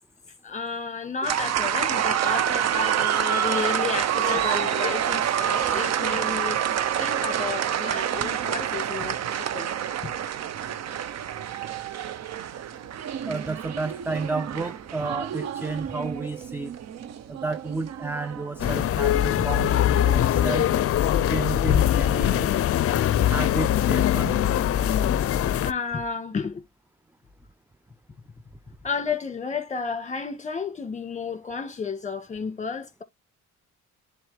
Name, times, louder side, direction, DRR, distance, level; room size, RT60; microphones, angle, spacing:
voice 1, 0.4-6.6 7.0-9.7 25.6-26.6 28.8-33.0, left 5 dB, 25° left, 1.6 m, -32 dB
sound 1, 1.2-18.9, right 10 dB, 60° right, 0.7 m, -27 dB
voice 2, 13.3-16.7 17.3-20.7 21.3-22.5 23.3-24.4, right 3 dB, 10° right, 0.3 m, -31 dB
sound 2, 18.6-25.7, left 11 dB, 50° left, 0.5 m, -22 dB
10.5 x 3.8 x 3.2 m
cardioid pair, 90°, 30 cm